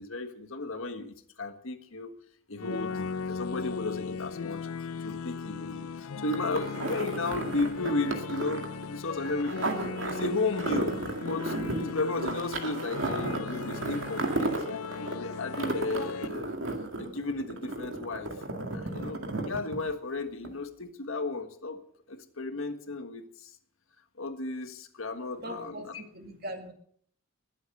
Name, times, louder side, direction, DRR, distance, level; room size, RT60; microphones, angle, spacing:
voice 1, 0.0-2.1 2.5-4.7 5.0-9.7 10.0-16.6 17.0-18.4 18.7-21.8 22.1-23.5 24.2-25.8, left 3 dB, 70° left, 8 dB, 1.6 m, -34 dB
sound 1, 2.6-16.3, left 5 dB, 85° left, 0.5 m, -38 dB
sound 2, 6.3-20.1 20.4-20.5, right 2 dB, 65° right, 2.1 m, -34 dB
voice 2, 25.3-26.7, equal, 45° right, 5 dB, 2.2 m, -40 dB
21.0 x 8.1 x 6.6 m, 0.62 s
head